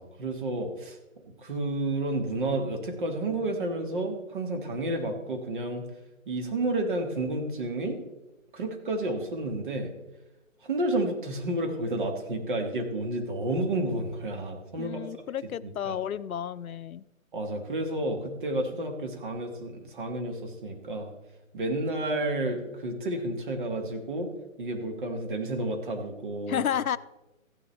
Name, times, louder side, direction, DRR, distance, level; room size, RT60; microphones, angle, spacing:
voice 1, 0.0-5.8 6.2-8.0 8.5-9.9 10.6-15.0 15.8-15.9 17.3-21.1 21.5-24.3 24.6-26.6, right 2 dB, 35° right, 3 dB, 1.7 m, -31 dB
voice 2, 14.8-17.0 26.5-27.0, left 9 dB, 85° left, 16 dB, 0.6 m, -31 dB
14.5 x 10.0 x 3.3 m, 0.98 s
hypercardioid pair, 160°, 41 cm